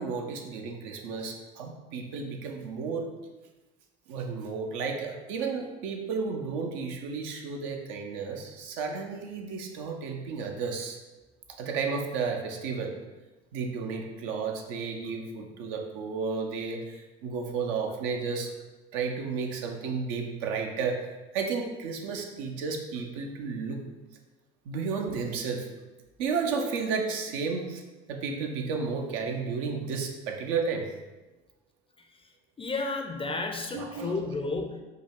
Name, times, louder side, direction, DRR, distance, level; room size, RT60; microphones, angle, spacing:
voice 1, 0.0-3.1 4.1-11.0 11.6-12.9 13.5-18.5 18.9-23.8 24.7-25.7 26.2-27.8 28.1-30.9 33.7-34.2, right 5 dB, 65° right, 2 dB, 0.7 m, -32 dB
voice 2, 32.6-34.8, left 3 dB, 20° left, 4 dB, 0.5 m, -32 dB
5.0 x 2.3 x 3.6 m, 1.2 s
hypercardioid pair, 75°, 29 cm